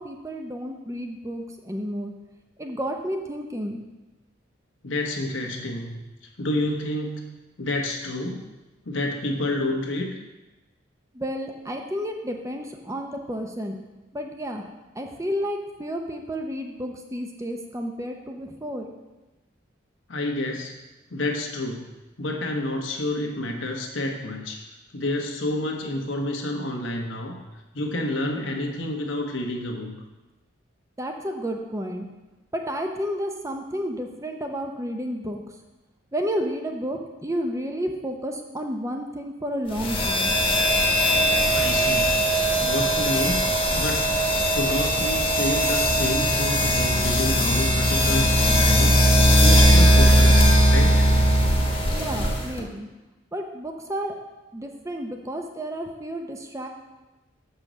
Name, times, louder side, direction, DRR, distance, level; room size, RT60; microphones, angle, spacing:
voice 1, 0.0-2.1 2.6-3.8 11.1-13.8 14.1-14.6 14.9-18.9 31.0-32.1 32.5-35.4 36.1-40.4 51.9-52.9 53.3-54.1 54.5-56.7, equal, 15° right, 3 dB, 0.7 m, -31 dB
voice 2, 4.8-6.0 6.4-8.5 8.8-10.1 20.1-20.7 21.1-21.9 22.2-24.7 24.9-27.4 27.7-30.0 41.5-43.5 43.7-44.2 44.5-49.0 49.4-51.1, left 1 dB, 85° left, 2 dB, 1.2 m, -29 dB
sound 1, 39.7-52.6, equal, 25° left, 1.2 m, -19 dB
6.7 x 5.6 x 6.3 m, 1.1 s
head